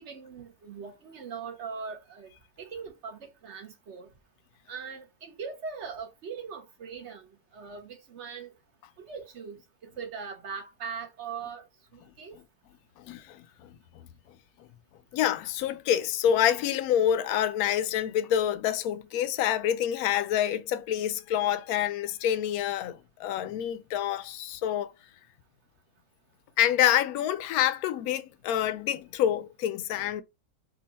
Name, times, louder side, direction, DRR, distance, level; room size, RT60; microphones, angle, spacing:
voice 1, 0.0-2.3 2.6-4.1 4.7-7.3 7.5-8.5 9.0-9.6 9.8-11.6 11.9-12.4, right 6 dB, 50° right, 1.2 m, -40 dB
voice 2, 13.0-13.8 15.1-24.9 26.6-30.2, left 10 dB, 70° left, 1.0 m, -27 dB
3.7 x 2.5 x 4.1 m
omnidirectional pair, 1.7 m